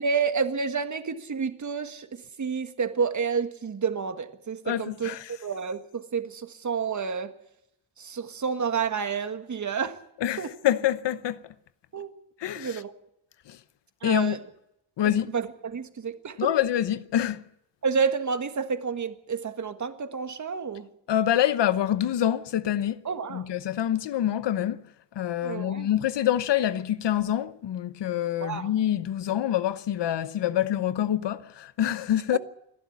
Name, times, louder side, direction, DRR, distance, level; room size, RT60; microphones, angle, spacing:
voice 1, 0.0-7.3 8.0-10.0 10.4-10.5 11.9-12.1 12.6-12.9 14.0-14.4 15.0-16.5 17.8-20.9 23.0-23.5 25.4-25.9 28.4-28.7 32.3-32.4, right 6 dB, 40° right, 1.8 m, -30 dB
voice 2, 4.7-5.2 10.2-11.4 12.4-12.8 13.5-13.6 14.0-14.4 15.0-15.3 16.4-17.4 21.1-23.0 23.3-24.8 25.1-32.4, left 11 dB, 70° left, 0.9 m, -26 dB
28.0 x 11.5 x 8.4 m
wide cardioid pair, 140°, 43 cm